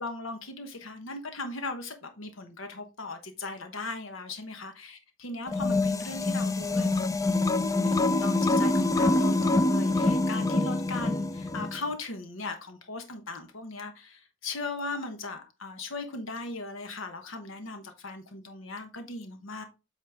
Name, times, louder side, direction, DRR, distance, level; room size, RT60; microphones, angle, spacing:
voice 1, 0.0-7.1 7.4-19.6, left 3 dB, 85° left, 1.1 m, -38 dB
sound 1, 5.5-11.8, left 2 dB, 15° left, 0.4 m, -25 dB
8.3 x 4.3 x 3.5 m
head